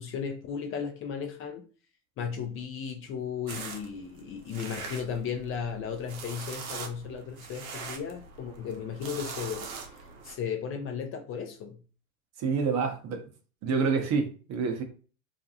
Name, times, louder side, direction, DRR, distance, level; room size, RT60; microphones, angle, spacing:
voice 1, 0.0-1.6 2.2-9.7 10.2-11.8, left 7 dB, 35° left, 0.4 m, -35 dB
sound 1, 3.5-10.3, right 5 dB, 80° right, 0.7 m, -42 dB
voice 2, 12.4-13.2 13.6-14.8, right 5 dB, 40° right, 0.7 m, -27 dB
2.5 x 2.2 x 2.7 m
hypercardioid pair, 90°, 41 cm